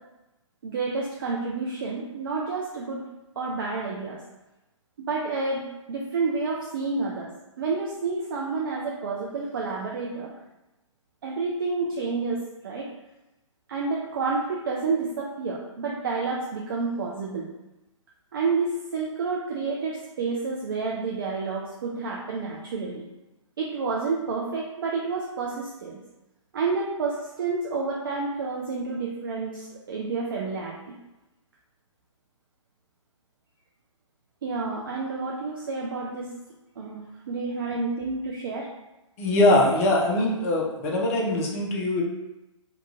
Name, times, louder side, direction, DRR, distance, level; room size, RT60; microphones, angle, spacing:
voice 1, 0.6-3.0 3.4-4.2 5.0-7.3 7.6-10.3 11.2-12.9 13.7-17.5 18.3-23.0 23.6-26.0 26.5-31.0 34.4-36.3 36.8-38.7, right 4 dB, 45° right, -3 dB, 0.4 m, -29 dB
voice 2, 39.2-42.0, left 1 dB, 25° left, -2 dB, 0.6 m, -22 dB
2.9 x 2.3 x 3.5 m, 0.99 s
figure-of-eight pair, 130°, 17 cm